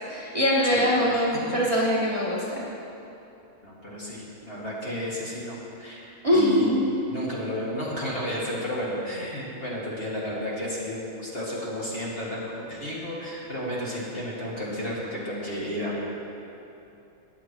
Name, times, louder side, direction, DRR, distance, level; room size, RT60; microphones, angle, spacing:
voice 1, 0.1-2.6 6.2-6.8, equal, 25° right, -7 dB, 1.5 m, -23 dB
voice 2, 0.7-1.2 3.6-6.8 7.0-16.0, equal, 40° left, -7 dB, 2.5 m, -32 dB
21.0 x 7.4 x 3.1 m, 2.9 s
omnidirectional pair, 1.5 m